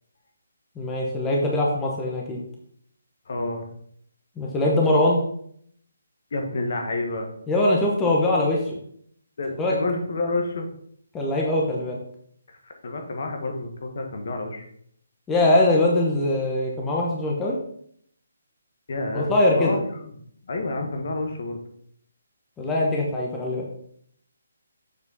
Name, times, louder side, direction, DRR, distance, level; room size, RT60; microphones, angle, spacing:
voice 1, 0.8-2.4 4.4-5.2 7.5-8.8 9.6-9.7 11.1-12.0 15.3-17.6 19.1-19.7 22.6-23.6, left 1 dB, 10° left, -3 dB, 0.9 m, -22 dB
voice 2, 3.3-3.7 6.3-7.3 9.4-10.7 12.5-14.6 18.9-21.6, left 2 dB, 55° left, 4 dB, 1.5 m, -29 dB
7.0 x 4.8 x 4.1 m, 0.66 s
hypercardioid pair, 165°, 0 cm